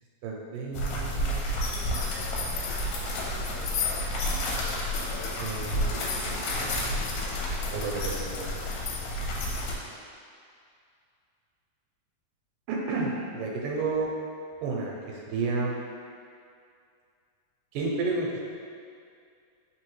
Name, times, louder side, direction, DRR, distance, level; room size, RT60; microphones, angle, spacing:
voice 1, 0.2-1.6 5.4-7.2 7.6-8.6 12.7-14.1 14.6-15.8 17.7-18.5, right 3 dB, 85° right, -2 dB, 2.2 m, -32 dB
sound 1, 0.7-9.7, left 1 dB, 90° left, 2.3 m, -30 dB
5.0 x 3.4 x 3.1 m, 2.3 s
omnidirectional pair, 3.9 m